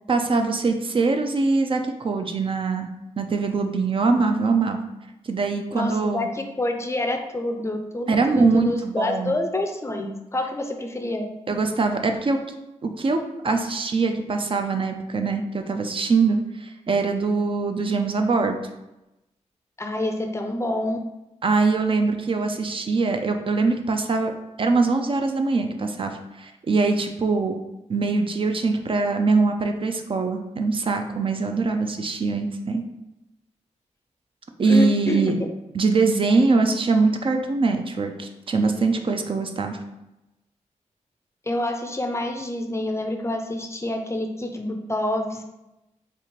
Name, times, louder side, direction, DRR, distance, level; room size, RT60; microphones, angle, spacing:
voice 1, 0.1-2.9 3.2-4.8 5.2-6.3 8.1-9.4 11.5-12.4 12.8-18.6 21.4-24.3 24.6-27.6 27.9-32.8 34.6-35.4 35.7-39.8, right 4 dB, 45° right, 5 dB, 0.4 m, -22 dB
voice 2, 5.7-11.3 19.8-21.0 34.7-35.3 41.5-45.5, left 1 dB, 20° left, 4 dB, 0.4 m, -27 dB
4.2 x 2.5 x 3.0 m, 0.93 s
cardioid pair, 85°, 13 cm